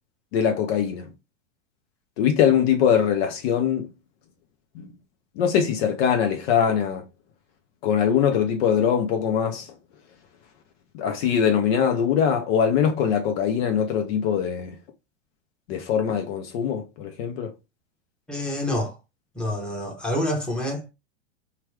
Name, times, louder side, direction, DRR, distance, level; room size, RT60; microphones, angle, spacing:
voice 1, 0.3-1.0 2.2-3.9 4.8-4.9 5.4-7.0 7.8-9.6 10.9-14.7 15.7-17.5, left 8 dB, 55° left, 0.8 m, -22 dB
voice 2, 18.3-19.0 19.3-20.9, left 1 dB, ahead, 1.1 m, -27 dB
2.9 x 2.4 x 3.1 m
hypercardioid pair, 100°, 36 cm